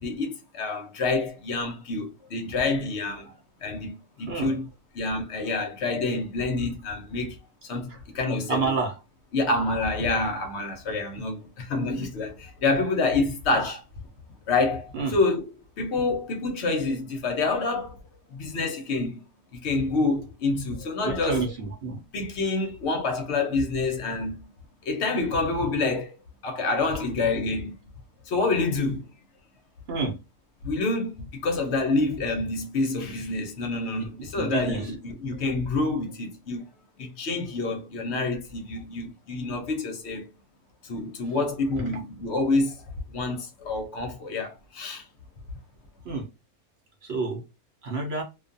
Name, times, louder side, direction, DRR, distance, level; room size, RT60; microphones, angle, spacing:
voice 1, 0.0-3.3 3.6-4.7 4.9-7.4 7.7-8.8 9.3-13.8 14.5-15.5 15.8-18.0 18.3-19.2 19.5-21.5 22.1-24.5 24.9-26.1 26.4-27.7 28.3-29.0 30.6-36.6 37.0-40.3 40.8-42.8 43.1-45.0, left 3 dB, 60° left, 0.8 m, -27 dB
voice 2, 8.5-8.9 11.2-11.3 14.9-15.2 21.0-22.0 29.9-30.2 34.0-34.1 34.4-34.8 46.0-46.2 47.1-47.4 47.8-48.2, right 4 dB, 50° right, 0.9 m, -28 dB
2.5 x 2.3 x 2.5 m
omnidirectional pair, 1.6 m